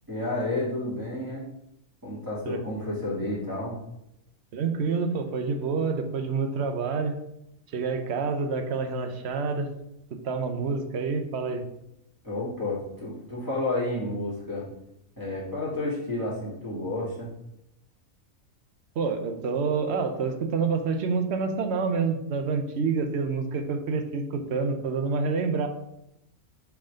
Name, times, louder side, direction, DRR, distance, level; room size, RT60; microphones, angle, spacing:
voice 1, 0.1-1.5 2.0-3.8 12.2-14.7 15.2-17.3, left 2 dB, 15° right, -9 dB, 2.5 m, -31 dB
voice 2, 4.5-7.2 7.7-9.7 10.1-11.7 19.0-25.7, right 4 dB, 55° right, 6 dB, 1.0 m, -28 dB
5.9 x 4.7 x 5.0 m, 0.83 s
omnidirectional pair, 1.5 m